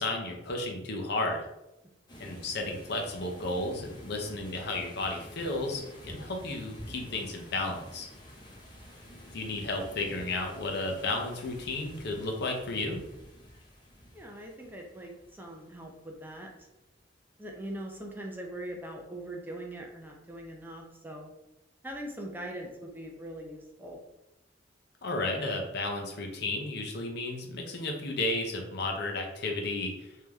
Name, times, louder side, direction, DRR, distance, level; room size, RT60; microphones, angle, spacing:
voice 1, 0.0-1.4 2.2-8.1 9.3-13.0 25.0-30.1, left 2 dB, 65° left, 2 dB, 0.7 m, -33 dB
sound 1, 2.1-16.6, equal, 25° left, 0.9 m, -49 dB
voice 2, 14.1-16.7 17.4-21.3 21.8-24.0, right 1 dB, 10° right, 1 dB, 0.5 m, -41 dB
3.3 x 2.8 x 3.5 m, 0.92 s
head